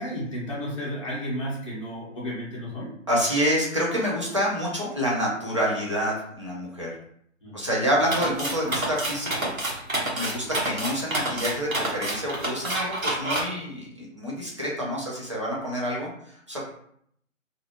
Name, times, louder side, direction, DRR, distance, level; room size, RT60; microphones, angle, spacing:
voice 1, 0.0-2.9 7.4-7.6 10.4-10.5, equal, 25° left, -6 dB, 0.8 m, -33 dB
voice 2, 3.1-6.9 7.5-9.5 10.1-16.6, equal, 25° right, -6 dB, 0.5 m, -27 dB
sound 1, 8.1-13.4, right 1 dB, 90° right, 1.0 m, -28 dB
2.5 x 2.3 x 2.8 m, 0.69 s
figure-of-eight pair, 150°, 40 cm